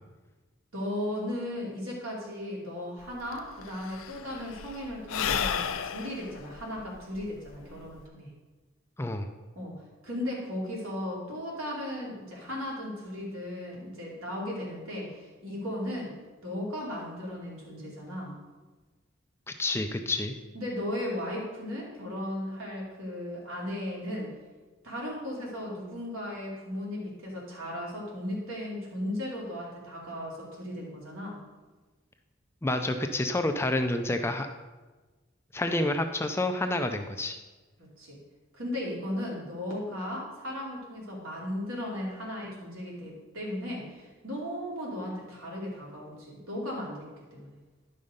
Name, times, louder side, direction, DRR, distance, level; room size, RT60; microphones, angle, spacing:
voice 1, 0.7-8.3 9.5-9.7 10.0-16.1 16.4-18.4 20.5-24.3 24.8-31.4 35.6-35.8 37.8-38.2 38.5-47.5, left 1 dB, 80° right, -3 dB, 2.8 m, -36 dB
Sigh / Breathing, 3.0-3.1 3.3-8.0, left 7 dB, 80° left, 0.5 m, -33 dB
voice 2, 9.0-9.3 19.5-20.3 32.6-34.5 35.5-37.4, left 2 dB, 10° left, 6 dB, 0.4 m, -29 dB
10.5 x 5.5 x 5.1 m, 1.3 s
head